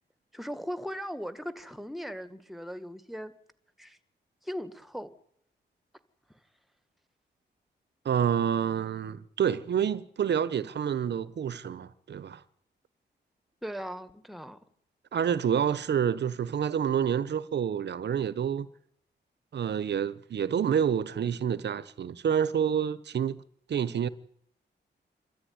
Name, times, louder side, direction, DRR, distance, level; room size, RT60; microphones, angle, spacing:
voice 1, 0.3-3.3 3.8-4.0 4.4-5.1 13.6-14.6, equal, ahead, 1.8 m, -38 dB
voice 2, 8.0-12.4 15.1-18.7 19.5-23.4 23.7-24.1, right 8 dB, 65° right, 1.0 m, -28 dB
26.5 x 13.5 x 9.6 m
cardioid pair, 85°, 19 cm